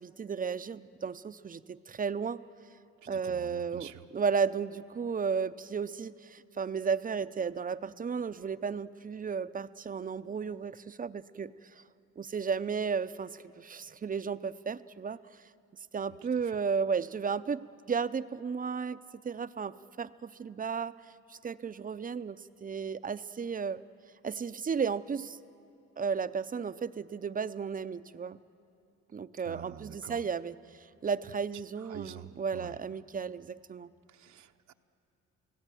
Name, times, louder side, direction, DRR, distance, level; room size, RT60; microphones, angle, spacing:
voice 1, 0.0-2.4 3.1-11.8 12.2-15.4 15.9-19.0 19.2-20.9 21.3-23.8 24.2-25.4 26.0-28.4 29.1-33.9, right 6 dB, 30° right, 13 dB, 0.6 m, -34 dB
voice 2, 3.1-4.1 16.4-16.6 29.4-30.2 31.8-32.8 34.1-34.7, right 10 dB, 70° right, 7 dB, 0.9 m, -47 dB
29.5 x 17.5 x 9.2 m, 2.8 s
cardioid pair, 90°, 30 cm